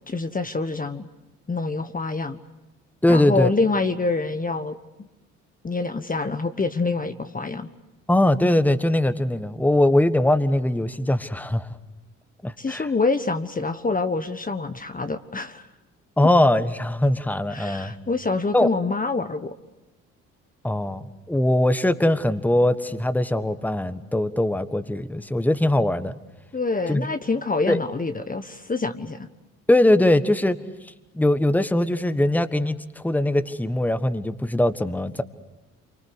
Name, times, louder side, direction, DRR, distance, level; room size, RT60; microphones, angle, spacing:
voice 1, 0.1-1.1 1.5-2.4 3.1-5.1 5.6-7.7 12.6-15.7 17.5-19.5 26.5-29.3, left 3 dB, 20° left, 8 dB, 1.3 m, -26 dB
voice 2, 3.0-3.5 8.1-11.7 12.4-12.9 16.2-17.9 18.5-18.7 20.6-26.1 26.9-27.1 27.7-27.8 29.7-30.6 31.1-35.2, left 1 dB, 5° left, 11 dB, 1.5 m, -21 dB
28.0 x 24.5 x 8.1 m, 1.0 s
hypercardioid pair, 50°, 37 cm